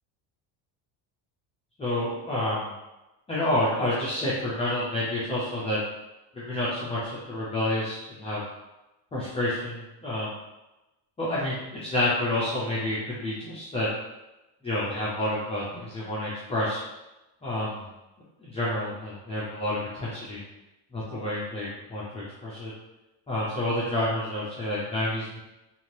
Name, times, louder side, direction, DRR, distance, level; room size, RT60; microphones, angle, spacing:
voice 1, 1.8-2.7 3.3-5.8 6.3-7.0 7.3-8.4 9.1-10.3 11.2-13.9 14.6-16.8 17.4-17.9 18.4-20.4 20.9-22.7 23.3-25.4, left 1 dB, 15° left, -9 dB, 0.4 m, -29 dB
2.7 x 2.5 x 3.1 m, 1.0 s
cardioid pair, 140°, 49 cm